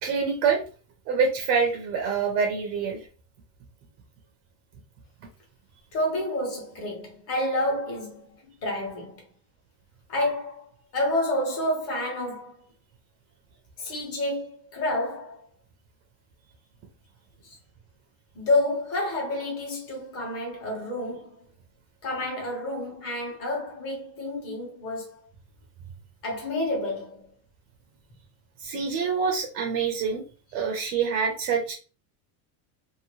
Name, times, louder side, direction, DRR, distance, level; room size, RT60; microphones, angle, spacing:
voice 1, 0.0-0.6 1.1-3.0 28.6-30.2 30.5-31.7, right 5 dB, 35° right, 0.4 m, -26 dB
voice 2, 5.9-9.2 10.1-12.6 13.8-15.4 17.4-17.6 18.3-21.5 22.0-25.2 26.2-27.3, left 1 dB, 30° left, 1.1 m, -29 dB
2.8 x 2.5 x 2.9 m
cardioid pair, 180°, 46 cm